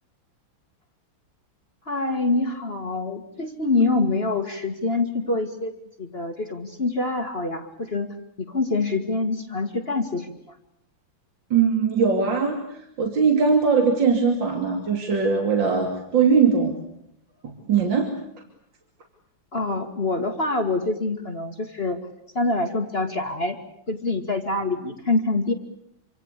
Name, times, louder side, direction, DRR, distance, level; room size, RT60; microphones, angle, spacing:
voice 1, 1.9-8.1 8.4-10.3 19.5-22.0 22.3-23.6 23.9-25.5, left 3 dB, 30° left, 5 dB, 2.0 m, -25 dB
voice 2, 11.5-16.7 17.4-18.1, right 5 dB, 65° right, 3 dB, 3.4 m, -21 dB
27.5 x 26.0 x 8.2 m, 0.75 s
omnidirectional pair, 2.2 m